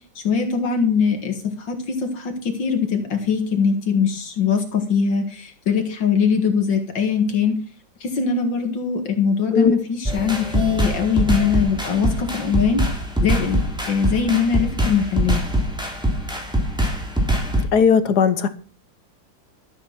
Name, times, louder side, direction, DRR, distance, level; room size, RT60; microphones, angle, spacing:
voice 1, 0.2-7.6 8.0-12.8 13.2-13.6 13.9-15.4, left 6 dB, 80° left, 5 dB, 2.5 m, -21 dB
sound 1, 10.0-17.6, right 1 dB, ahead, 3.3 m, -23 dB
voice 2, 17.7-18.5, left 6 dB, 65° left, 12 dB, 1.5 m, -17 dB
13.0 x 8.6 x 5.9 m, 0.41 s
omnidirectional pair, 2.0 m